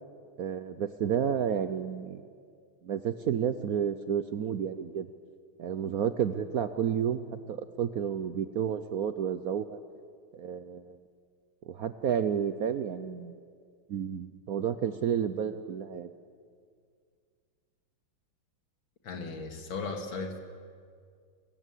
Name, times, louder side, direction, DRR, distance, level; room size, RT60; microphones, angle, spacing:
voice 1, 0.4-2.2 2.8-5.1 5.6-9.8 10.4-11.0 11.7-13.4 13.9-16.1, right 8 dB, 65° right, 11 dB, 0.9 m, -31 dB
voice 2, 19.0-20.4, left 4 dB, 75° left, 4 dB, 2.8 m, -36 dB
28.0 x 15.5 x 8.3 m, 2.1 s
omnidirectional pair, 2.2 m